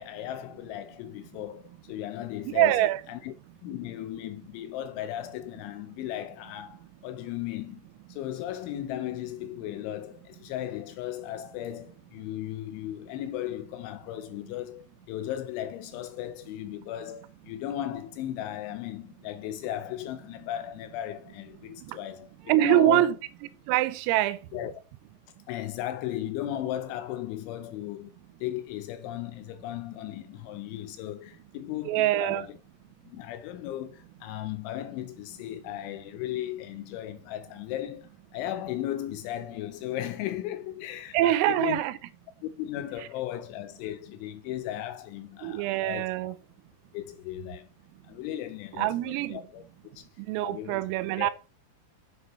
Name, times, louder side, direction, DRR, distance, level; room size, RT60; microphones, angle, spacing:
voice 1, 0.0-3.3 3.6-23.1 24.5-24.7 25.5-28.1 28.4-32.6 33.1-41.8 42.4-46.3 46.9-47.7 48.1-49.6 50.0-50.1 50.4-50.8 51.2-51.3, left 12 dB, 80° left, 2.8 m, -36 dB
voice 2, 2.5-3.0 21.9-22.0 22.5-23.2 23.7-24.4 31.9-32.5 41.1-41.9 45.4-46.4 48.8-49.4 50.3-51.3, right 15 dB, 85° right, 3.4 m, -24 dB
8.1 x 8.0 x 4.1 m
omnidirectional pair, 5.9 m